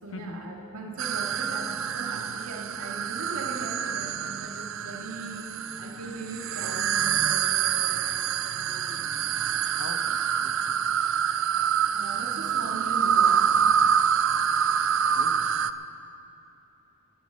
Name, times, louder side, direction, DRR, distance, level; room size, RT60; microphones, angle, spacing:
voice 1, 0.0-9.1 11.9-13.6, right 2 dB, 90° right, 0 dB, 1.8 m, -39 dB
sound 1, 1.0-15.7, right 8 dB, 60° right, 0.4 m, -26 dB
voice 2, 9.8-10.8 15.1-15.7, left 2 dB, 65° left, 7 dB, 1.0 m, -43 dB
17.5 x 9.5 x 6.7 m, 2.8 s
head